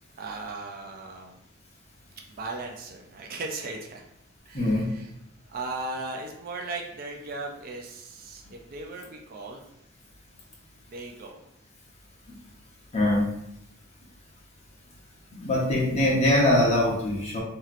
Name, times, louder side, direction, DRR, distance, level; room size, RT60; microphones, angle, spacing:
voice 1, 0.2-1.4 2.3-4.0 4.5-5.1 5.5-9.6 10.9-11.4, right 3 dB, 45° right, 1 dB, 0.4 m, -37 dB
voice 2, 4.5-4.9 12.9-13.3 15.4-17.4, left 1 dB, 30° left, -5 dB, 0.9 m, -22 dB
3.0 x 2.8 x 2.5 m, 0.79 s
head